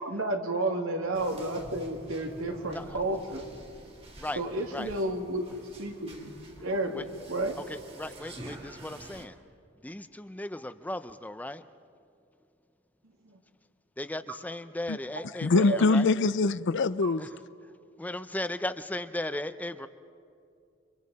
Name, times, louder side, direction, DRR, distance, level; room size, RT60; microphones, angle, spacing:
voice 1, 0.0-3.4 4.4-5.4 5.8-7.6 13.2-13.3 15.6-15.8 17.0-17.1, right 2 dB, 85° right, 2.4 m, -31 dB
sound 1, 1.1-9.3, right 1 dB, 30° right, 2.1 m, -48 dB
voice 2, 7.6-9.4 9.8-11.6 14.0-16.1 17.2-17.4 18.0-19.9, left 1 dB, 10° left, 0.5 m, -36 dB
voice 3, 15.4-17.2, left 3 dB, 60° left, 0.5 m, -23 dB
29.5 x 25.5 x 4.2 m
head